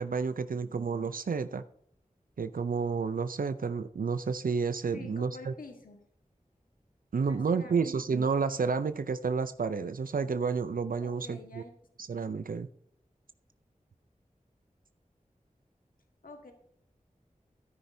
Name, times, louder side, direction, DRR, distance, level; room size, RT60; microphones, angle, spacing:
voice 1, 0.0-1.6 2.4-5.5 7.1-11.6 12.0-12.7, right 5 dB, 85° right, 0.5 m, -30 dB
voice 2, 4.9-6.0 7.3-7.9 11.0-11.7 16.2-16.5, left 3 dB, 90° left, 1.5 m, -48 dB
13.0 x 10.5 x 2.7 m
wide cardioid pair, 55°, 14 cm